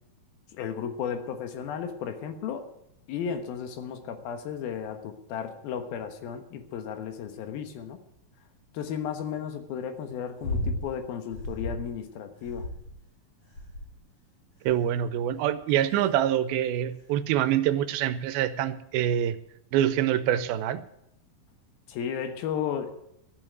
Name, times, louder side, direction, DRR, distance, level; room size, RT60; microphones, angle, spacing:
voice 1, 0.5-2.7 3.1-8.0 8.7-12.7 21.9-22.9, left 8 dB, 85° left, 8 dB, 3.2 m, -34 dB
sound 1, 10.4-10.9 11.3-11.9 12.4-13.1 13.5-14.0 14.7-15.0 15.7-16.1 17.0-17.1, left 1 dB, 45° left, 4.7 m, -34 dB
voice 2, 14.7-19.4 19.7-20.8, right 11 dB, 85° right, 14 dB, 2.6 m, -25 dB
13.0 x 7.8 x 9.4 m, 0.79 s
omnidirectional pair, 4.2 m